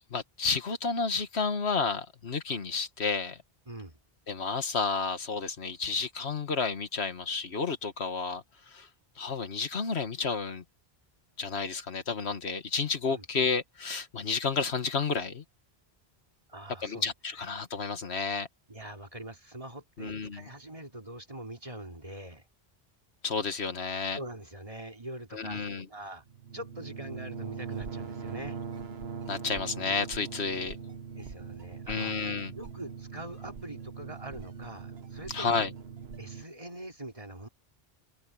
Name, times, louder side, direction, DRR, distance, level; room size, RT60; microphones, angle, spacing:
voice 1, 0.1-3.4 4.3-8.9 9.2-10.6 11.4-15.4 16.8-18.5 20.0-20.4 23.2-24.2 25.3-25.9 29.3-30.8 31.9-32.5 35.3-35.7, left 5 dB, 90° left, 1.8 m, -31 dB
voice 2, 3.7-4.0 13.1-13.3 16.5-17.1 18.7-22.4 24.1-26.2 26.5-28.6 31.1-32.1 32.5-35.6 36.2-37.5, right 1 dB, 35° right, 3.3 m, -43 dB
sound 1, 26.3-36.4, right 6 dB, 75° right, 1.5 m, -41 dB
omnidirectional pair, 1.1 m